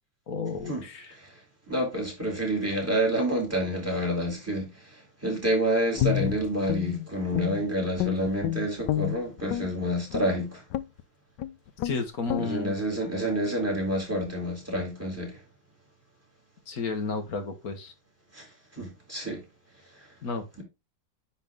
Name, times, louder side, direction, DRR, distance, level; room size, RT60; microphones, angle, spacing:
voice 1, 0.3-1.1 11.8-12.8 16.7-17.9 20.2-20.4, left 4 dB, 55° left, 1.7 m, -32 dB
voice 2, 1.7-10.6 12.4-15.4 18.3-18.5 18.7-19.4 19.9-20.1, equal, 5° right, 3.3 m, -28 dB
Guitar, 6.0-7.7 8.0-9.7 10.1-10.3 10.7-11.0 11.4-11.5 11.8-12.0 12.3-12.5, left 13 dB, 75° left, 1.1 m, -29 dB
10.0 x 4.1 x 3.6 m
omnidirectional pair, 2.0 m